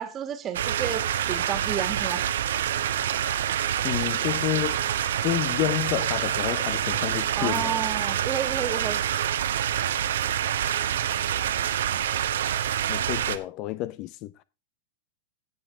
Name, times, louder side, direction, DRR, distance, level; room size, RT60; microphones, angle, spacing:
voice 1, 0.0-2.3 7.4-9.0, right 8 dB, 30° right, 1.8 m, -31 dB
sound 1, 0.5-13.4, right 10 dB, 70° right, 0.9 m, -27 dB
voice 2, 3.8-4.8 5.2-7.8 12.9-14.4, left 15 dB, 45° left, 0.6 m, -29 dB
16.0 x 6.2 x 3.5 m
hypercardioid pair, 100°, 0 cm